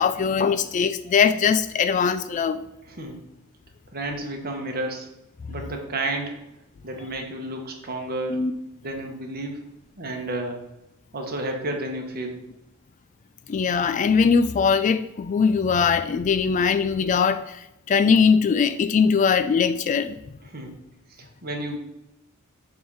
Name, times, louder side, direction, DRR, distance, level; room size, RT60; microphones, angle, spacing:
voice 1, 0.0-2.6 8.3-8.5 13.5-20.2, left 6 dB, 35° left, 0.3 m, -21 dB
voice 2, 3.9-5.1 5.5-6.4 6.8-8.4 8.8-9.6 10.0-10.6 11.1-12.4 20.5-20.7 21.2-21.8, right 2 dB, 45° right, 1.3 m, -31 dB
7.7 x 3.6 x 5.5 m
head